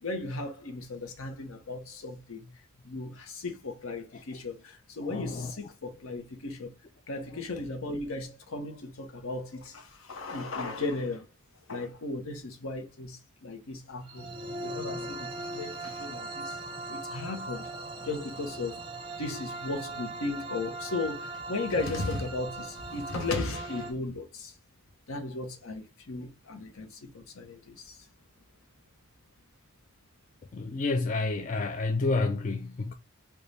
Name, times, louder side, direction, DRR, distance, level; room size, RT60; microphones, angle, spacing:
voice 1, 0.0-2.4 2.8-6.7 7.1-11.3 11.7-14.3 14.6-16.6 16.9-17.7 18.0-18.8 19.2-24.5 25.1-28.0, left 3 dB, 75° left, 0.8 m, -36 dB
voice 2, 5.0-5.5 30.5-32.9, left 3 dB, 35° left, 0.3 m, -29 dB
sound 1, 14.1-23.9, right 2 dB, 25° right, 0.6 m, -39 dB
3.3 x 2.2 x 4.0 m
head